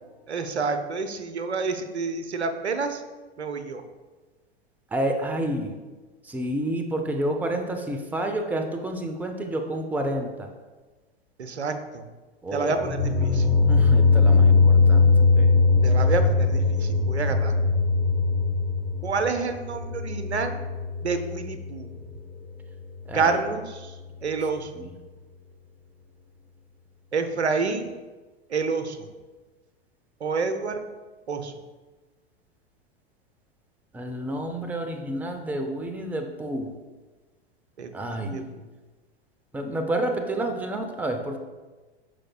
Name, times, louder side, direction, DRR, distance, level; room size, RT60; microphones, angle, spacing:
voice 1, 0.0-3.0 3.4-3.8 11.4-12.1 12.5-13.5 15.8-17.6 19.0-20.6 21.0-21.9 23.1-24.0 24.2-24.8 27.1-28.0 28.5-29.1 30.2-30.8 31.3-31.5 37.8-38.4, right 4 dB, 85° right, 8 dB, 0.8 m, -28 dB
voice 2, 4.9-5.8 6.2-10.5 12.4-12.9 13.2-13.4 13.7-15.5 23.1-23.4 24.8-24.9 33.9-36.7 37.9-38.5 39.5-41.4, right 1 dB, 5° right, 5 dB, 0.5 m, -29 dB
sound 1, 12.7-21.7, left 4 dB, 45° left, 2.2 m, -20 dB
12.5 x 5.0 x 2.2 m, 1.3 s
figure-of-eight pair, 100°, 32 cm